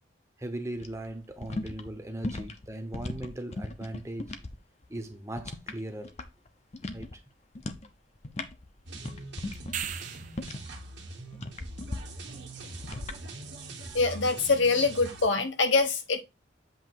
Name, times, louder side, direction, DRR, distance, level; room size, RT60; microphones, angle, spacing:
voice 1, 0.4-4.3 4.9-6.2 6.9-7.2, right 1 dB, 15° right, 0.9 m, -38 dB
sound 1, 0.8-4.6 4.8-6.5 6.7-7.1 7.5-7.9 8.2-10.8 11.3-12.0 12.8-13.2, left 2 dB, 35° left, 0.7 m, -38 dB
sound 2, 8.9-15.3, right 2 dB, 60° right, 1.6 m, -42 dB
sound 3, 9.5-10.5 15.2-15.3, right 9 dB, 40° right, 0.5 m, -36 dB
voice 2, 13.9-16.2, left 4 dB, 70° left, 1.0 m, -24 dB
7.8 x 2.9 x 4.6 m
head